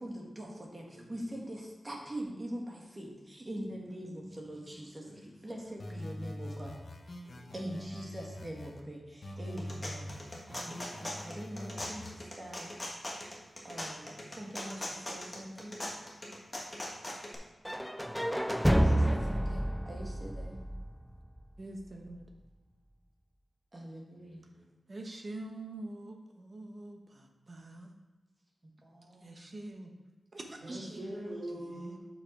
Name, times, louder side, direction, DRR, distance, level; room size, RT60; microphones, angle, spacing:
voice 1, 0.0-5.0 5.4-6.8 7.5-12.7 13.6-15.8 18.8-20.6 23.7-24.4 28.8-29.4 30.6-31.2, right 1 dB, 30° right, -1 dB, 1.8 m, -43 dB
voice 2, 3.8-5.7 7.2-7.5 24.1-24.6 30.6-32.0, right 1 dB, 75° right, -10 dB, 2.8 m, -46 dB
sound 1, 5.8-8.8 9.2-12.2, left 1 dB, 55° left, 0.9 m, -44 dB
sound 2, 9.4-17.3, left 1 dB, 20° left, 1.4 m, -41 dB
sound 3, 17.6-21.6, equal, ahead, 0.3 m, -29 dB
voice 3, 21.6-22.2 24.9-27.9 29.2-29.9 30.3-31.1 31.5-32.0, right 2 dB, 45° right, 3 dB, 1.1 m, -45 dB
6.8 x 5.7 x 4.7 m, 1.2 s
wide cardioid pair, 100°, 0 cm